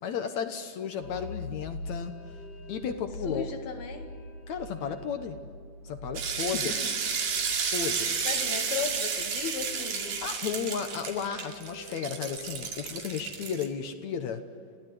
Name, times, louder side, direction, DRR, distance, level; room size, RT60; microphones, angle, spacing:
voice 1, 0.0-2.1 2.7-3.4 4.5-5.4 5.8-6.7 7.7-8.2 10.2-14.4, left 7 dB, 65° left, 8 dB, 2.0 m, -33 dB
sound 1, 1.0-13.2, left 1 dB, 40° left, 2.8 m, -44 dB
voice 2, 3.2-4.1 6.4-7.0 7.7-7.8 8.2-10.2, left 7 dB, 80° left, 3 dB, 3.9 m, -36 dB
sound 2, 6.2-13.7, right 6 dB, 60° right, 3.6 m, -32 dB
30.0 x 16.5 x 9.4 m, 2.2 s
omnidirectional pair, 4.3 m